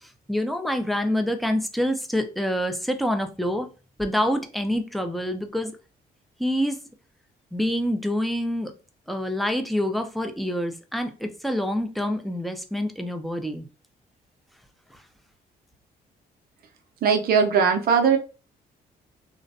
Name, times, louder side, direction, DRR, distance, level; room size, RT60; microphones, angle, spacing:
voice 1, 0.0-3.7 4.0-5.7 6.4-6.8 7.5-8.7 9.1-13.7, equal, ahead, 5 dB, 0.4 m, -26 dB
voice 2, 17.0-18.2, right 6 dB, 55° right, 5 dB, 0.5 m, -19 dB
2.5 x 2.0 x 2.5 m, 0.33 s
supercardioid pair, 70°, 18 cm